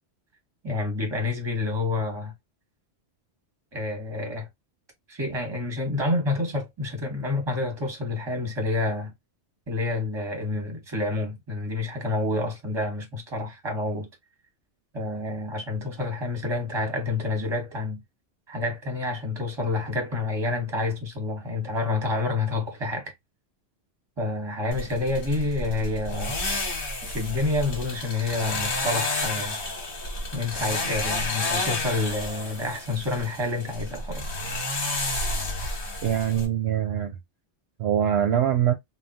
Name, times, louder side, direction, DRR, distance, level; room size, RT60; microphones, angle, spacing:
voice 1, 0.6-2.3 3.7-4.5 5.1-9.1 9.7-14.1 14.9-18.0 18.5-23.1 24.2-26.4 27.0-29.6 30.3-34.3, left 2 dB, 25° right, 1.1 m, -28 dB
sound 1, 24.7-36.5, left 2 dB, 55° left, 1.2 m, -31 dB
voice 2, 36.0-37.2 37.8-38.7, right 10 dB, 70° right, 0.8 m, -23 dB
3.4 x 2.3 x 2.7 m
omnidirectional pair, 1.2 m